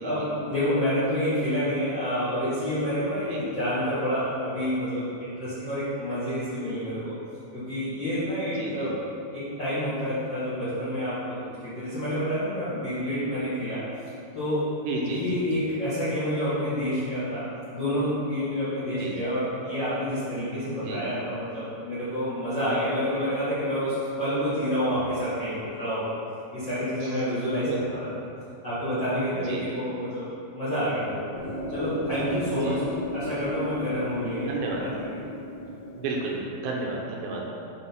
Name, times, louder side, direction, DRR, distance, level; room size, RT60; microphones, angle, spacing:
voice 1, 0.0-7.1 7.5-8.9 9.3-13.8 14.3-14.6 15.0-17.4 17.7-26.0 26.5-28.1 28.6-30.2 30.5-31.3 31.7-32.8 33.1-34.5 34.8-35.1, equal, 45° left, -12 dB, 1.4 m, -28 dB
voice 2, 8.6-8.9 14.8-15.2 15.5-15.6 19.0-19.2 20.8-21.0 22.7-22.8 27.0-27.1 27.7-27.9 29.5-29.8 32.6-32.8 34.4-34.8 36.0-37.4, right 3 dB, 80° right, -2 dB, 2.5 m, -32 dB
sound 1, 31.3-36.4, left 1 dB, 65° left, 3.1 m, -35 dB
7.5 x 3.8 x 5.7 m, 2.5 s
omnidirectional pair, 4.5 m